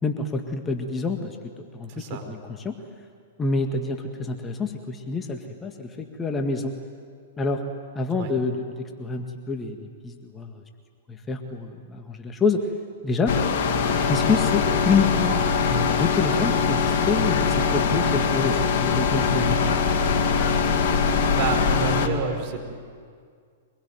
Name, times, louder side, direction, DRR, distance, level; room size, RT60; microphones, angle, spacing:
voice 1, 0.0-2.8 3.4-6.7 7.4-7.6 8.0-10.6 11.1-12.7 13.0-13.3 14.1-19.9, left 4 dB, 15° left, 4 dB, 1.9 m, -27 dB
voice 2, 1.9-2.3 8.1-8.3 21.3-22.7, right 6 dB, 45° right, 3 dB, 4.5 m, -29 dB
sound 1, 13.3-22.1, left 5 dB, 50° left, 2.2 m, -22 dB
25.0 x 21.5 x 9.4 m, 2.1 s
figure-of-eight pair, 105°, 0 cm